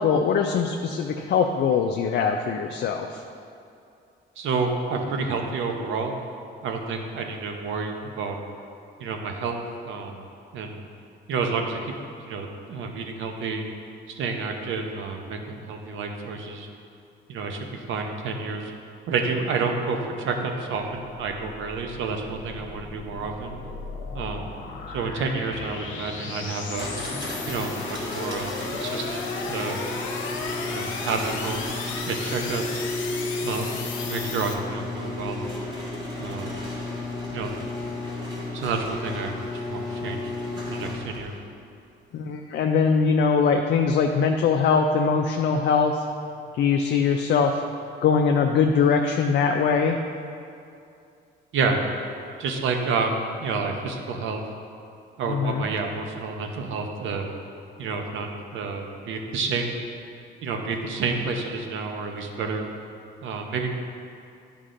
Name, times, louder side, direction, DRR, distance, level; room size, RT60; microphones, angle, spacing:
voice 1, 0.0-3.2 42.1-46.0 46.5-47.6 48.0-50.0 55.3-55.6, left 5 dB, 60° left, 3 dB, 0.4 m, -22 dB
voice 2, 4.4-6.1 6.6-8.4 9.0-9.6 9.8-10.2 10.5-10.9 11.3-11.9 12.3-13.6 14.1-16.7 17.3-18.7 19.1-23.6 24.1-24.5 24.9-26.9 27.5-29.8 30.7-31.6 32.0-32.9 33.4-33.7 34.1-35.4 36.2-36.5 37.3-37.5 38.5-40.3 40.6-41.4 51.5-51.8 52.4-54.4 55.2-57.3 57.8-59.7 60.4-62.7 63.2-63.7, right 4 dB, 80° right, 3 dB, 0.8 m, -29 dB
sound 1, 21.2-34.5, left 4 dB, 75° left, 0.9 m, -35 dB
sound 2, 26.7-41.4, left 2 dB, 20° right, 1.5 m, -33 dB
9.7 x 5.2 x 2.5 m, 2.5 s
cardioid pair, 90°, 20 cm